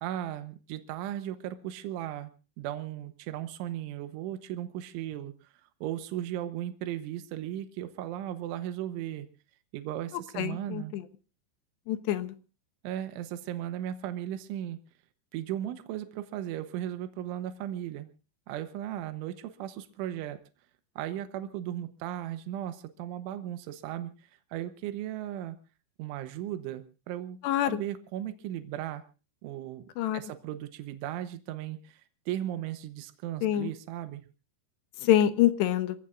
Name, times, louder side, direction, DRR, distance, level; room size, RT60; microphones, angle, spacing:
voice 1, 0.0-2.3 2.6-5.5 5.8-9.3 9.7-10.9 12.8-14.8 15.3-18.1 18.5-20.4 21.0-25.6 26.0-27.4 27.7-29.1 29.4-34.2, right 12 dB, 85° right, 10 dB, 3.5 m, -36 dB
voice 2, 10.4-11.0 11.9-12.3 27.4-27.8 30.0-30.2 33.4-33.7 35.0-36.0, left 12 dB, 75° left, 10 dB, 3.0 m, -26 dB
28.0 x 16.0 x 2.5 m, 0.34 s
omnidirectional pair, 5.4 m